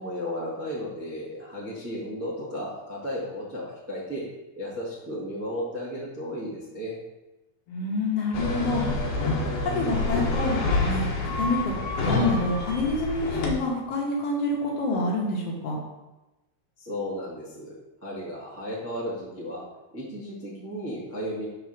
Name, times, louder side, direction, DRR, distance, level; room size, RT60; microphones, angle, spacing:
voice 1, 0.0-4.2 4.6-7.0 16.8-17.7 18.0-19.6 19.9-21.5, equal, 10° right, -7 dB, 0.6 m, -34 dB
voice 2, 7.7-8.8 9.2-9.3 9.6-11.1 11.4-15.8, left 2 dB, 60° left, -3 dB, 2.1 m, -27 dB
sound 1, 8.3-13.5, left 3 dB, 90° left, 2.6 m, -27 dB
4.9 x 4.7 x 6.1 m, 1.0 s
omnidirectional pair, 3.5 m